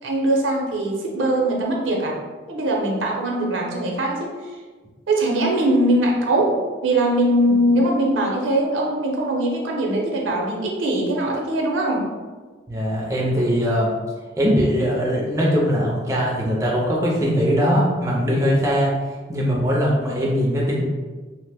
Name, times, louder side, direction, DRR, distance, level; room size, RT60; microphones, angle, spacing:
voice 1, 0.0-2.2 2.5-4.3 5.1-12.0, right 1 dB, 85° right, -1 dB, 0.6 m, -21 dB
voice 2, 12.7-13.9 14.4-18.9 19.3-20.8, equal, 15° right, -4 dB, 0.4 m, -21 dB
2.8 x 2.0 x 3.3 m, 1.3 s
head